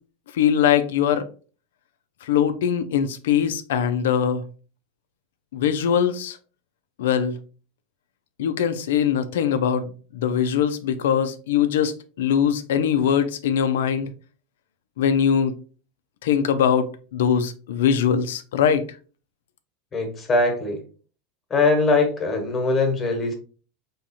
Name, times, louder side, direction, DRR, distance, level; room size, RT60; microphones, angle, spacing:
voice 1, 0.3-1.2 2.3-4.4 5.5-6.4 7.0-7.4 8.4-11.9 12.2-14.1 15.0-15.5 16.2-18.8, left 8 dB, 75° left, 0.4 m, -21 dB
voice 2, 19.9-20.8 21.5-23.3, left 3 dB, 30° left, 1.2 m, -21 dB
3.5 x 3.0 x 2.8 m
hypercardioid pair, 90°, 0 cm